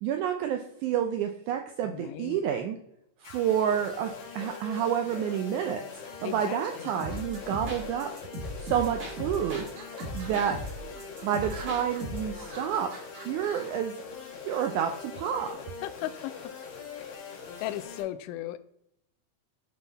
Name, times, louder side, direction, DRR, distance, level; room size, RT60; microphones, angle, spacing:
voice 1, 0.0-2.8 3.2-5.8 6.2-8.1 8.6-9.7 10.1-10.6 11.2-12.9 13.2-13.9 14.4-15.6, right 9 dB, 85° right, 5 dB, 1.7 m, -29 dB
voice 2, 1.8-2.4 6.2-6.9 15.8-16.3 16.9-17.2 17.6-18.6, left 14 dB, 90° left, 12 dB, 1.8 m, -36 dB
sound 1, 3.2-18.0, left 6 dB, 70° left, 3.4 m, -42 dB
sound 2, 6.4-7.6 8.3-8.9 9.4-13.8, right 4 dB, 65° right, 3.0 m, -48 dB
sound 3, 7.0-9.7 10.0-12.3, equal, 45° right, 1.1 m, -38 dB
11.0 x 3.9 x 4.0 m, 0.75 s
omnidirectional pair, 4.2 m